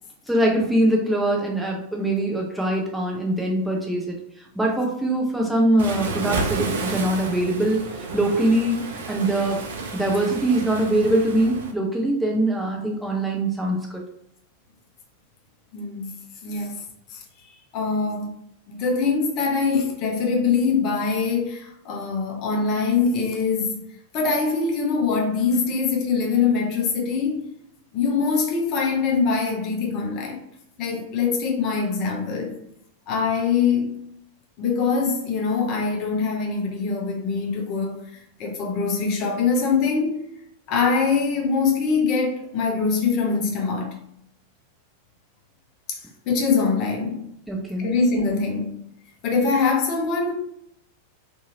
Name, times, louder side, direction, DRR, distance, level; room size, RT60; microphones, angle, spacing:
voice 1, 0.3-4.2 4.6-8.8 9.1-9.6 9.9-14.0 47.5-47.9, right 1 dB, 5° right, 0.5 m, -22 dB
Waves surf, 5.8-11.7, right 3 dB, 60° right, 0.4 m, -31 dB
voice 2, 15.7-16.1 16.4-16.8 17.1-17.2 17.7-18.3 18.7-23.8 24.1-27.4 27.9-30.4 30.8-32.6 33.1-33.9 34.6-40.2 40.7-44.0 45.9-46.0 46.3-47.3 47.8-48.8 49.2-50.3, left 5 dB, 40° left, 0.7 m, -23 dB
2.7 x 2.6 x 2.6 m
figure-of-eight pair, 90°, 0 cm